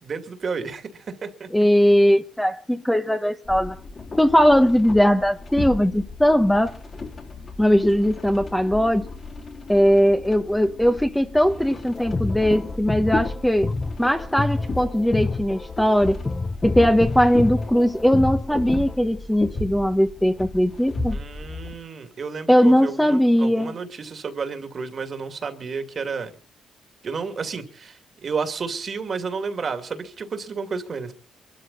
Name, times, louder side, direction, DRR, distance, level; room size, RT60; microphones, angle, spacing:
voice 1, 0.0-1.5 21.1-26.3 27.0-31.1, right 5 dB, 45° right, 2.5 m, -31 dB
voice 2, 1.5-3.7 4.2-6.7 7.6-9.0 9.7-13.7 14.0-16.2 16.6-21.2 22.5-23.7, equal, 5° left, 1.3 m, -19 dB
sound 1, 3.4-21.7, left 3 dB, 40° left, 3.5 m, -35 dB
sound 2, 11.9-18.9, left 3 dB, 20° left, 0.8 m, -28 dB
23.0 x 12.5 x 4.2 m
cardioid pair, 90°, 0 cm